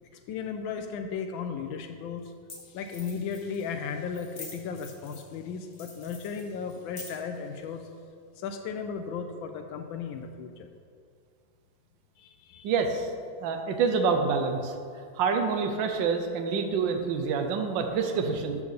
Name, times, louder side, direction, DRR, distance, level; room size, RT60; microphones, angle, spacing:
voice 1, 0.3-2.3 2.6-7.9 8.4-10.7 12.2-12.8, left 6 dB, 90° left, 5 dB, 1.4 m, -35 dB
sound 1, 1.4-1.5 2.2-2.3 2.5-2.6 2.9-3.6 4.1-5.3 5.7-7.4, left 4 dB, 45° left, 2.0 m, -45 dB
voice 2, 12.6-13.1 13.4-14.7 15.2-18.6, right 5 dB, 75° right, 5 dB, 1.5 m, -27 dB
13.5 x 5.9 x 4.0 m, 2.2 s
omnidirectional pair, 2.1 m